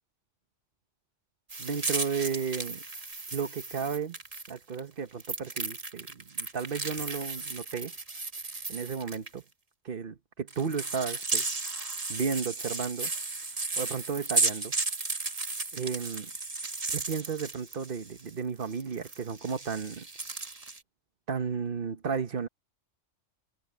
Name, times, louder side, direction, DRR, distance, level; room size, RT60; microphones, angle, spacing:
sound 1, 1.5-4.8 5.2-9.3 10.5-18.3 18.6-20.8, right 3 dB, 30° right, 1.4 m, -34 dB
voice 1, 1.6-2.8 3.3-4.2 4.5-7.9 8.7-9.4 9.8-11.5 12.1-13.1 13.8-14.7 15.7-16.3 16.9-20.1 21.3-22.5, right 6 dB, 45° right, 1.3 m, -33 dB
omnidirectional pair, 1.3 m